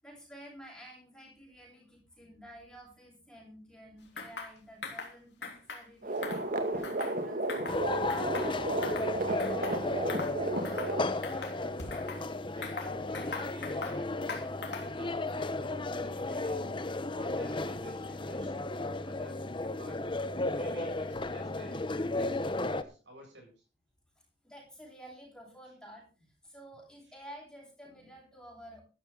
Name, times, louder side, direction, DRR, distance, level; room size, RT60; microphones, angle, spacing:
voice 1, 0.0-8.9 9.3-9.9 24.4-26.0 26.4-28.8, equal, 5° left, -3 dB, 7.8 m, -51 dB
sound 1, 4.2-4.5 4.8-5.1 5.4-5.8 6.2-7.2 7.5-7.8 8.1-9.1 9.4-9.8 10.1-10.3 10.6-10.9 11.2-12.2 12.6-14.0 14.3-15.0, left 4 dB, 65° left, 3.4 m, -41 dB
sound 2, 6.0-11.1, right 1 dB, 50° right, 2.2 m, -33 dB
sound 3, 7.7-22.8, left 2 dB, 25° left, 0.9 m, -34 dB
voice 2, 10.8-11.9 12.5-14.2 14.8-16.7 17.1-20.0 20.5-23.6, right 1 dB, 70° right, 2 dB, 7.9 m, -52 dB
13.5 x 13.5 x 3.9 m, 0.34 s
head